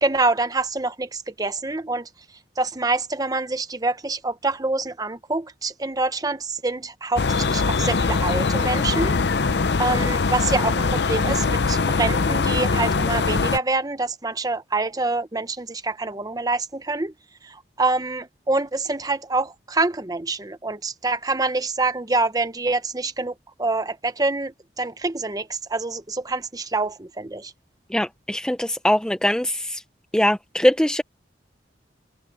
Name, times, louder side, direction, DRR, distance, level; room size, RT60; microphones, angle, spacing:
voice 1, 0.0-2.1 2.6-9.2 9.8-17.1 17.4-23.3 23.6-27.5, right 3 dB, 20° right, 1.0 m, -26 dB
sound 1, 7.2-13.6, left 4 dB, 65° left, 0.7 m, -22 dB
voice 2, 27.9-29.8 30.1-31.0, left 1 dB, 5° left, 0.5 m, -21 dB
head